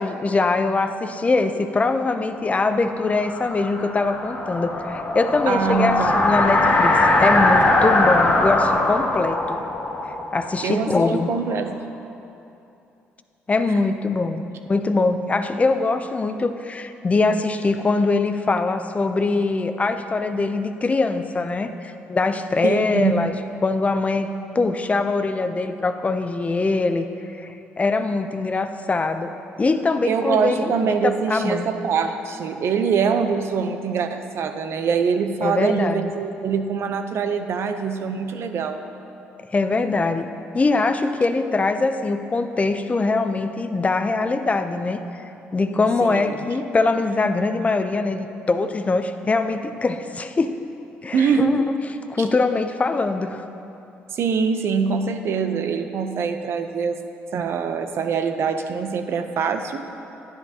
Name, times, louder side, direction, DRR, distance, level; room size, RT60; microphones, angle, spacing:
voice 1, 0.0-6.9 7.2-9.6 10.1-11.4 13.5-14.4 14.7-23.4 23.6-27.1 27.4-29.3 29.6-31.7 35.4-36.1 39.5-40.3 40.5-50.5 51.0-51.8 52.1-53.4, left 3 dB, 30° left, 9 dB, 0.5 m, -22 dB
sound 1, 2.7-11.4, left 2 dB, 45° left, 1.5 m, -21 dB
voice 2, 5.5-6.2 10.6-11.8 22.6-23.1 30.0-38.8 46.0-46.4 51.1-51.6 54.1-57.0 57.3-59.8, right 6 dB, 60° right, 7 dB, 0.6 m, -24 dB
10.5 x 10.5 x 2.8 m, 2.8 s
supercardioid pair, 65°, 5 cm